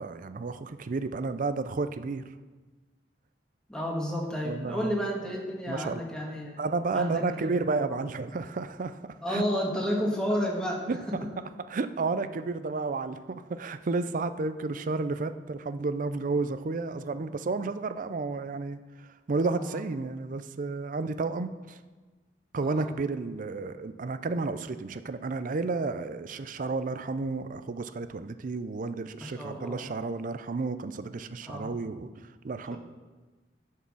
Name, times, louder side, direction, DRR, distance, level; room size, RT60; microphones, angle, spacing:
voice 1, 0.0-2.2 4.4-5.0 5.7-6.0 6.6-9.0 9.3-9.4 10.9-11.0 11.7-21.8 22.5-32.8, right 3 dB, 50° right, 11 dB, 0.5 m, -32 dB
voice 2, 3.7-6.6 6.9-7.6 9.2-10.8 19.6-19.8 22.6-22.9 29.2-29.8 31.4-31.7 32.7-32.8, equal, 5° left, -2 dB, 1.5 m, -31 dB
10.0 x 4.7 x 6.2 m, 1.3 s
head